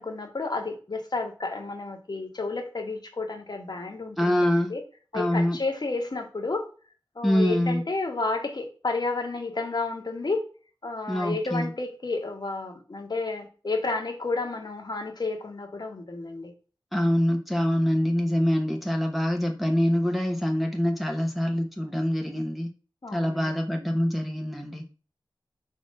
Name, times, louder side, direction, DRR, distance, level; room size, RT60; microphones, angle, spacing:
voice 1, 0.0-4.8 5.1-6.7 7.1-10.4 10.8-16.5 23.0-23.6, left 3 dB, 55° left, 1.4 m, -31 dB
voice 2, 4.2-4.7 5.1-5.6 7.2-7.8 11.1-11.7 16.9-22.7 23.1-24.8, equal, ahead, 0.9 m, -25 dB
5.0 x 3.9 x 5.2 m
wide cardioid pair, 75°, 9 cm